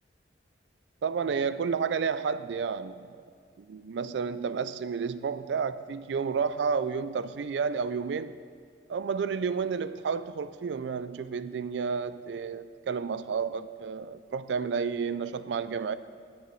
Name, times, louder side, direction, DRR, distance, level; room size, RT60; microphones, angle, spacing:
voice 1, 1.0-3.2 3.6-8.3 8.9-15.9, right 5 dB, 80° right, 0.4 m, -31 dB
9.6 x 6.9 x 8.3 m
head